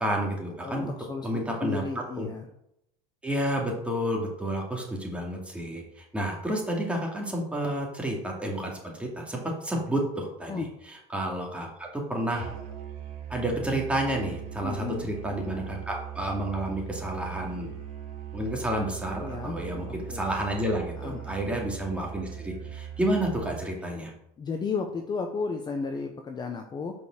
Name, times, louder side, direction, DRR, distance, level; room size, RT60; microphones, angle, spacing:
voice 1, 0.0-0.9 1.2-1.8 2.2-2.3 3.2-12.5 13.3-17.7 18.3-24.1, right 1 dB, 5° right, -1 dB, 2.4 m, -30 dB
voice 2, 0.6-2.5 10.4-10.7 14.6-15.1 19.2-20.2 21.0-21.3 24.4-26.9, left 4 dB, 25° left, 4 dB, 0.8 m, -34 dB
Musical instrument, 12.3-24.0, right 9 dB, 50° right, 2.5 m, -40 dB
6.9 x 5.4 x 6.5 m, 0.78 s
supercardioid pair, 130°, 18 cm